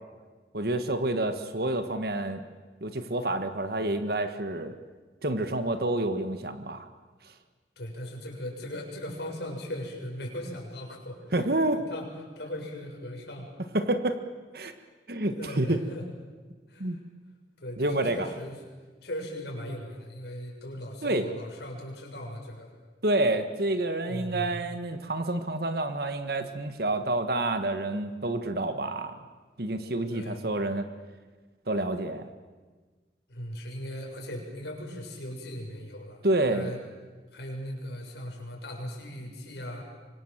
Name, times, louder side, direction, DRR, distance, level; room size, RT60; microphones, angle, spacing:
voice 1, 0.5-2.5 2.8-4.7 5.2-6.9 11.3-11.8 13.7-14.2 14.5-14.7 15.1-15.8 16.8-17.0 17.8-18.3 21.0-21.3 23.0-29.2 29.6-30.9 31.7-32.3 36.2-36.8, right 2 dB, 60° right, 9 dB, 1.5 m, -28 dB
voice 2, 7.8-11.2 11.7-12.1 12.4-13.5 15.4-16.0 16.7-17.0 17.6-18.6 19.0-22.7 24.0-24.6 30.1-30.5 33.3-36.8 37.3-39.8, equal, 70° left, 0 dB, 6.9 m, -38 dB
25.0 x 25.0 x 7.5 m, 1.4 s
head